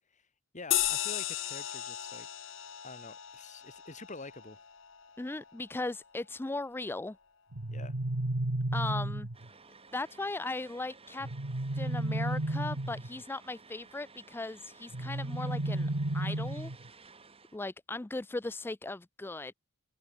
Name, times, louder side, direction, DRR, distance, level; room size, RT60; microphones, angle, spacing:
voice 1, 0.5-2.3 2.8-4.6 7.7-8.0, left 3 dB, 35° left, 2.2 m, -47 dB
sound 1, 0.7-5.6, left 13 dB, 65° left, 2.1 m, -36 dB
voice 2, 5.2-7.2 8.7-9.3 9.9-11.3 11.7-16.7 17.5-19.5, left 2 dB, 10° left, 0.3 m, -38 dB
sound 2, 7.5-9.5 11.2-13.2 14.9-16.9, right 1 dB, 90° right, 1.8 m, -33 dB
sound 3, 9.3-17.6, right 4 dB, 25° right, 2.9 m, -56 dB
open air
head